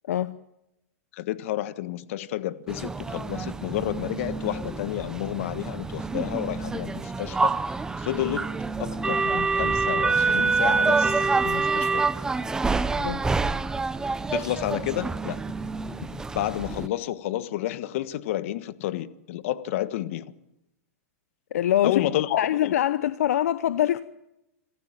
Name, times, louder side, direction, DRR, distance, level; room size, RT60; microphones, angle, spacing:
voice 1, 0.1-0.4 13.0-13.2 21.5-22.0 22.3-24.0, left 11 dB, 75° left, 0.8 m, -24 dB
voice 2, 1.1-7.5 8.0-8.5 8.8-12.1 14.3-15.4 16.1-20.3 21.8-22.7, left 14 dB, 60° left, 1.4 m, -30 dB
sound 1, 2.7-16.9, right 4 dB, 10° right, 0.7 m, -27 dB
27.0 x 14.5 x 9.1 m
hypercardioid pair, 140°, 8 cm